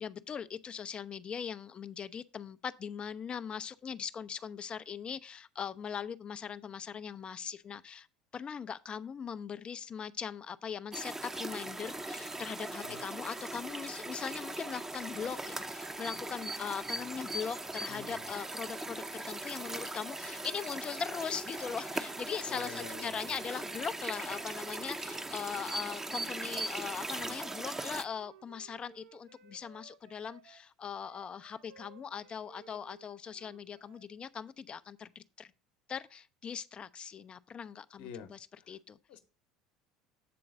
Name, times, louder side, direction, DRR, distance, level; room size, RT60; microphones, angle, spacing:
voice 1, 0.0-8.1 8.3-35.5 35.9-38.4 38.7-39.0, left 7 dB, 30° left, 0.4 m, -40 dB
sound 1, 10.9-28.0, right 2 dB, 15° right, 0.6 m, -39 dB
voice 2, 17.9-18.3 22.5-23.4 38.0-38.3 38.6-38.8 39.1-39.2, left 7 dB, 55° left, 0.9 m, -47 dB
Wind instrument woodwind instrument, 27.7-34.1, right 8 dB, 70° right, 0.7 m, -59 dB
7.7 x 3.8 x 6.4 m
figure-of-eight pair, 70°, 3 cm